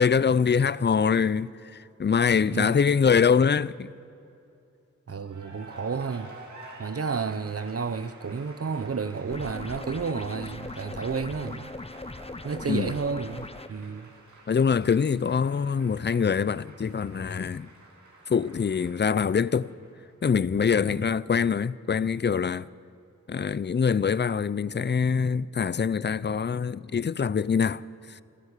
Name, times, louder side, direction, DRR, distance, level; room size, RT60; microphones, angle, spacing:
voice 1, 0.0-3.9 12.7-12.9 14.5-17.7 18.3-19.7 20.2-22.7 23.3-27.8 28.1-28.2, left 6 dB, 35° left, 0.6 m, -24 dB
voice 2, 5.1-6.3 6.8-11.7 12.4-14.1 21.0-21.1, right 5 dB, 55° right, 0.9 m, -31 dB
Cheering / Applause, 5.2-20.1, right 2 dB, 75° right, 4.2 m, -50 dB
sound 1, 9.3-13.7, left 2 dB, 20° left, 0.9 m, -40 dB
28.0 x 13.0 x 8.4 m
cardioid pair, 45°, 29 cm